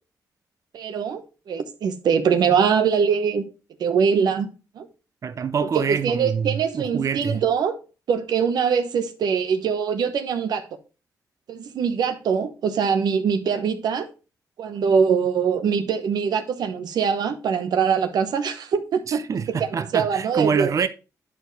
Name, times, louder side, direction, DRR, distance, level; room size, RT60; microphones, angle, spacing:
voice 1, 0.7-3.4 3.8-4.5 4.8-4.9 5.7-7.8 8.1-10.6 11.5-14.1 14.6-19.2 19.6-20.7, right 6 dB, 80° right, 1.0 m, -23 dB
voice 2, 5.2-7.4 19.1-20.9, right 6 dB, 50° right, 0.6 m, -25 dB
10.0 x 4.3 x 4.1 m
cardioid pair, 80°, 7 cm